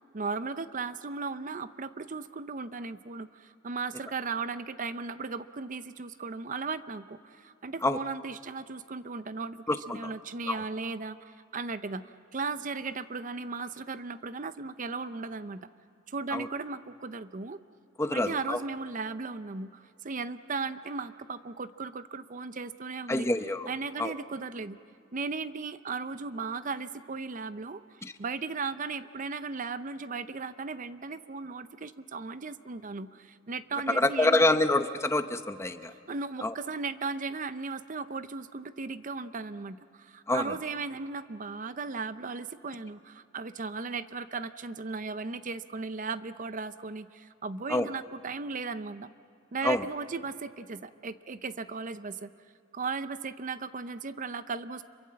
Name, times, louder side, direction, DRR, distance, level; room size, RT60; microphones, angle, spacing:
voice 1, 0.1-15.6 16.1-17.6 18.1-23.3 23.7-24.8 25.1-34.5 35.9-49.1 49.5-52.3 52.7-54.8, right 4 dB, 40° right, 13 dB, 0.6 m, -36 dB
voice 2, 18.0-18.6 23.1-23.7 24.0-24.1 28.0-28.1 33.9-35.9 36.4-36.5 40.3-40.4 47.7-47.9 49.6-49.8, left 2 dB, 15° left, 9 dB, 0.8 m, -26 dB
26.5 x 23.5 x 7.6 m, 2.5 s
head